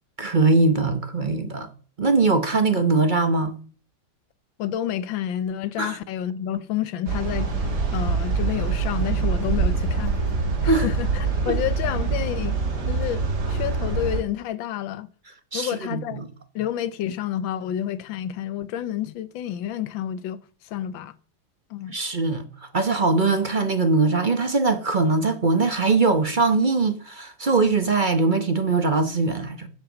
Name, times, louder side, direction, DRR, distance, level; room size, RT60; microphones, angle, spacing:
voice 1, 0.2-1.7 2.0-3.6 5.8-6.0 10.7-10.9 11.5-11.6 15.5-16.2 21.9-22.4 22.7-29.7, right 3 dB, 35° right, 0.9 m, -21 dB
voice 2, 4.6-7.5 7.9-10.1 10.6-12.6 12.9-15.1 15.5-16.2 16.5-21.1 21.7-22.0, left 11 dB, 90° left, 1.6 m, -29 dB
sound 1, 7.1-14.2, right 4 dB, 60° right, 2.8 m, -25 dB
10.0 x 7.9 x 7.2 m
omnidirectional pair, 2.0 m